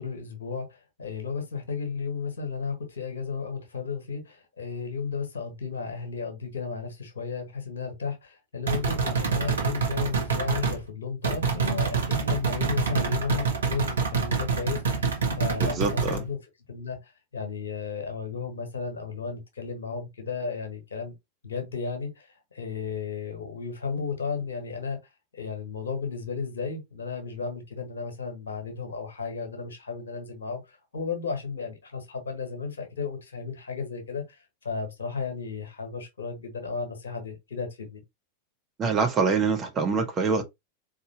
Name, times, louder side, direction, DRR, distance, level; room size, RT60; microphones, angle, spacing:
voice 1, 0.0-15.1 15.3-16.4 16.7-21.1 21.4-25.0 25.3-38.0, left 5 dB, 70° left, 1.3 m, -34 dB
sound 1, 8.7-10.8 11.2-16.2, right 5 dB, 70° right, 1.1 m, -26 dB
voice 2, 15.6-16.2 38.8-40.4, right 5 dB, 25° right, 1.2 m, -25 dB
4.2 x 3.5 x 2.8 m
figure-of-eight pair, 90°, 0 cm